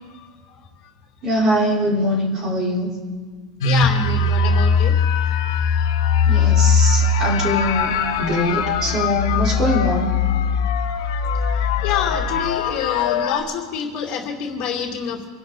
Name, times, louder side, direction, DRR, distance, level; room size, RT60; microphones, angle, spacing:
voice 1, 1.2-2.9 6.3-10.2, equal, 25° right, -2 dB, 4.3 m, -22 dB
sound 1, 3.6-13.4, left 5 dB, 90° left, 1.8 m, -20 dB
voice 2, 3.6-4.9 6.2-6.3 11.8-15.3, left 7 dB, 45° left, 1 dB, 2.7 m, -27 dB
27.5 x 11.5 x 4.0 m, 1.5 s
supercardioid pair, 155°, 2 cm